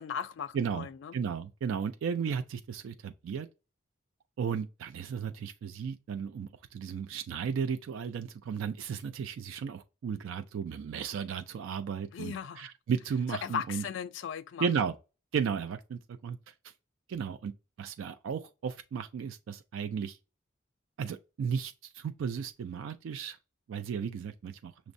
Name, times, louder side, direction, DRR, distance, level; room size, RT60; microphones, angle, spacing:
voice 1, 0.0-1.2 12.1-12.7 13.4-14.7, left 7 dB, 70° left, 0.3 m, -37 dB
voice 2, 0.5-0.9 1.1-3.5 4.4-13.8 14.6-15.0 15.3-16.5 17.1-17.5 17.8-20.2 21.0-23.4 23.7-24.7, right 6 dB, 80° right, 0.3 m, -34 dB
5.9 x 2.0 x 2.5 m
head